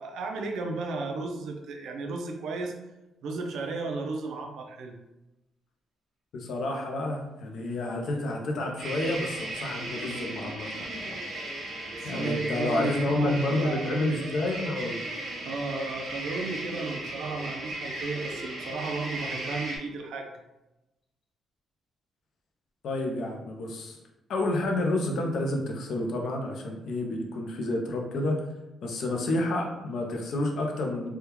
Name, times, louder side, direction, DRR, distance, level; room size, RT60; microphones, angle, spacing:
voice 1, 0.0-2.7 3.2-5.0 12.0-14.2 15.4-20.3, right 3 dB, 75° right, 2 dB, 0.5 m, -34 dB
voice 2, 6.3-10.7 11.0-11.2 12.0-15.0 22.8-24.0 24.3-28.4 28.8-31.1, left 1 dB, 60° left, 2 dB, 0.5 m, -29 dB
sound 1, 8.8-19.8, right 1 dB, 55° right, 0.9 m, -36 dB
3.4 x 2.2 x 2.9 m, 0.97 s
cardioid pair, 175°, 0 cm